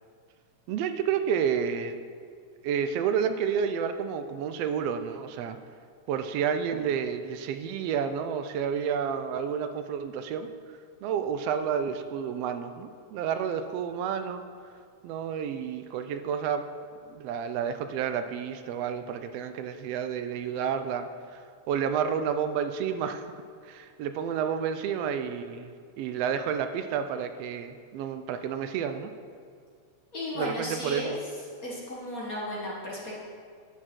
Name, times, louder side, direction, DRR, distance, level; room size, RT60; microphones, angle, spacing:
voice 1, 0.7-2.0 2.6-5.6 6.1-10.5 11.0-14.4 15.0-16.6 17.1-23.3 23.6-25.7 26.0-29.1 30.4-31.2, right 7 dB, 80° right, 9 dB, 1.4 m, -30 dB
voice 2, 30.1-31.1 31.6-33.1, left 1 dB, 40° left, -5 dB, 1.4 m, -34 dB
10.5 x 8.8 x 4.4 m, 2.2 s
omnidirectional pair, 3.3 m